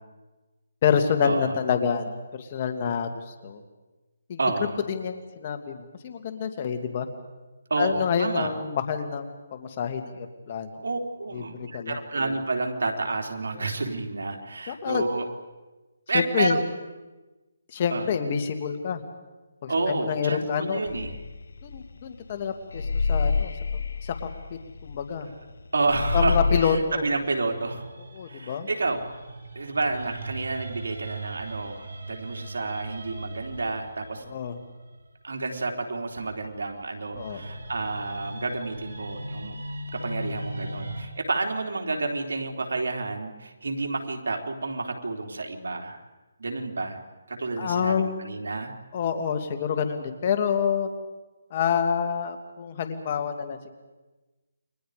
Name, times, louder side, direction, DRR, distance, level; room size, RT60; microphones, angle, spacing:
voice 1, 0.8-3.6 4.3-4.4 4.9-7.1 7.8-10.8 11.3-12.0 13.5-13.7 14.7-15.1 16.1-16.6 17.7-19.0 19.6-20.8 21.6-23.5 24.0-24.2 24.5-25.3 26.1-27.0 28.1-28.7 34.3-34.6 37.1-37.4 47.6-48.2 48.9-50.9 51.5-53.7, left 7 dB, 35° left, 6 dB, 2.3 m, -27 dB
voice 2, 4.4-4.7 7.7-8.5 10.8-15.3 16.1-16.6 17.9-18.1 19.7-21.2 25.7-27.9 28.3-29.0 29.5-34.2 35.2-39.6 39.9-46.0 46.4-47.0 47.3-48.7, right 3 dB, 80° right, 2 dB, 3.8 m, -30 dB
sound 1, 20.9-22.3 22.7-25.6 25.9-26.8, left 5 dB, 75° left, 1.0 m, -27 dB
sound 2, 26.3-35.3 36.2-41.0, right 1 dB, 60° right, 5.6 m, -40 dB
29.5 x 23.5 x 5.1 m, 1.2 s
hypercardioid pair, 165°, 0 cm